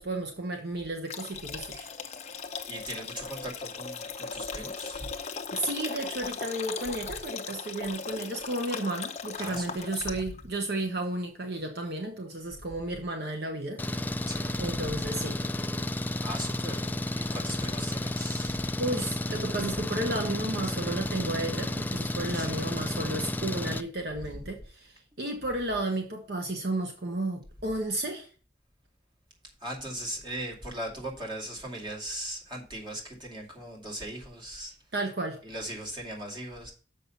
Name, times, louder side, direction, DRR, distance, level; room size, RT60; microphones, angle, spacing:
voice 1, 0.0-1.9 5.5-14.0 14.6-15.4 18.8-28.3 34.9-35.4, right 1 dB, 60° right, 1.1 m, -33 dB
sound 1, 1.1-10.4, left 5 dB, 40° left, 0.8 m, -38 dB
voice 2, 2.7-5.1 9.4-10.2 14.2-14.6 16.2-18.8 22.3-22.6 29.6-34.8 35.4-36.7, right 1 dB, 25° right, 2.4 m, -39 dB
Engine, 13.8-23.8, left 1 dB, 10° left, 0.3 m, -32 dB
7.0 x 5.6 x 5.7 m
head